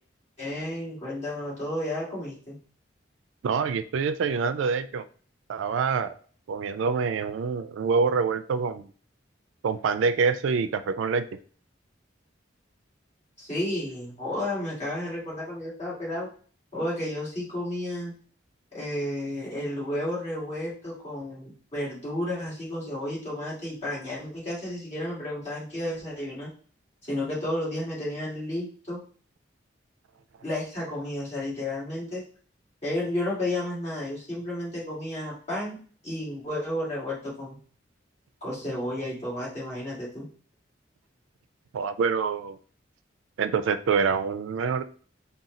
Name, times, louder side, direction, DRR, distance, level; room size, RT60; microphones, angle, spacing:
voice 1, 0.4-2.6 13.4-16.3 16.7-18.1 18.7-26.5 27.0-29.0 30.4-32.2 32.8-35.8 36.0-37.6 38.4-40.2, left 1 dB, 35° left, -7 dB, 2.0 m, -32 dB
voice 2, 3.4-5.0 5.5-6.2 6.5-8.9 9.6-11.3 41.7-42.6 43.4-44.8, right 5 dB, 85° right, 11 dB, 0.3 m, -26 dB
4.1 x 2.3 x 3.7 m, 0.43 s
head